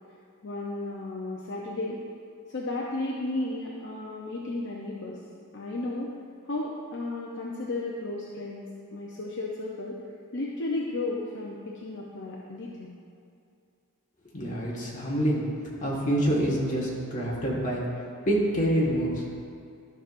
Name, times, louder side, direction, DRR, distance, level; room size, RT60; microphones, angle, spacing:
voice 1, 0.4-2.0 2.5-5.2 5.5-6.1 6.4-10.0 10.3-13.0, left 2 dB, 55° left, -3 dB, 0.7 m, -34 dB
voice 2, 14.3-17.9 18.2-19.2, right 1 dB, 35° left, -5 dB, 1.6 m, -26 dB
13.0 x 6.1 x 2.5 m, 2.4 s
head